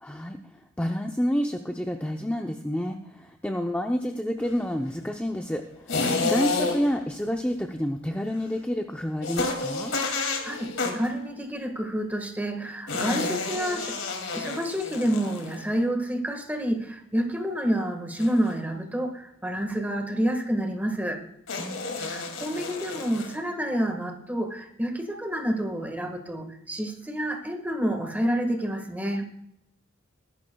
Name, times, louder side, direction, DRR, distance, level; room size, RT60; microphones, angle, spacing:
voice 1, 0.0-0.4 0.8-3.0 3.4-5.6 6.3-9.9 21.6-22.1, equal, 5° left, 3 dB, 0.6 m, -29 dB
sound 1, 5.9-7.0 9.2-11.1 12.9-15.7 18.2-18.5 21.5-23.4, left 3 dB, 90° left, 2.5 m, -30 dB
voice 2, 6.0-6.4 10.1-14.0 14.3-21.2 22.1-29.3, equal, 10° right, 4 dB, 1.6 m, -29 dB
22.0 x 11.5 x 2.3 m, 0.78 s
head